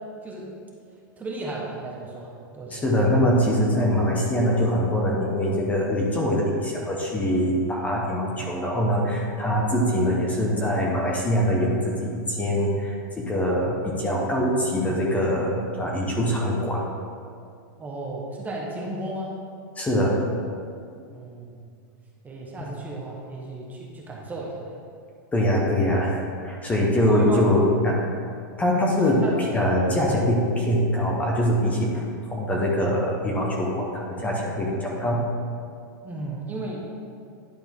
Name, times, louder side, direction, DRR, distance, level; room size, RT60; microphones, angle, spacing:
voice 1, 1.2-2.8 9.7-9.9 17.8-19.3 21.1-21.8 22.2-24.7 27.1-27.5 29.0-29.3 36.0-36.9, right 2 dB, 15° right, -3 dB, 1.0 m, -34 dB
voice 2, 2.7-16.8 19.8-20.2 25.3-28.0 28.6-29.2 29.5-32.0 32.3-35.3, equal, 15° left, -2 dB, 0.9 m, -23 dB
10.5 x 4.4 x 3.6 m, 2.3 s
supercardioid pair, 140°, 11 cm